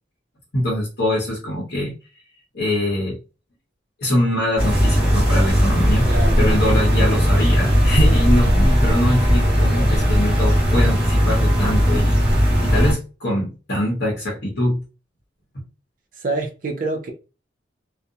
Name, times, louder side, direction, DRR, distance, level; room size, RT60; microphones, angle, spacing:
voice 1, 0.5-1.9 2.5-3.2 4.0-12.2 12.6-14.8 15.5-15.6, left 1 dB, 60° left, 0.8 m, -23 dB
sound 1, 4.6-12.9, equal, 5° right, 1.2 m, -17 dB
voice 2, 6.1-6.5 16.1-17.1, right 2 dB, 45° right, 0.5 m, -26 dB
2.5 x 2.0 x 2.7 m
head